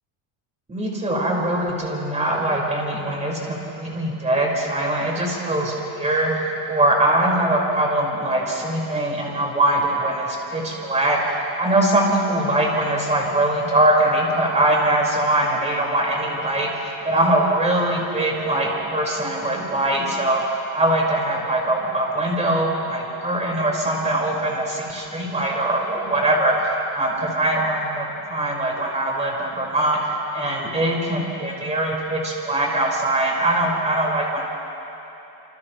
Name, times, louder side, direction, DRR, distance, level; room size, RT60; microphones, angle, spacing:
voice 1, 0.7-6.3 6.7-11.2 11.6-20.4 20.7-30.0 30.3-34.4, right 1 dB, 15° right, -3 dB, 5.4 m, -22 dB
29.5 x 29.0 x 3.3 m, 3.0 s
cardioid pair, 135°, 47 cm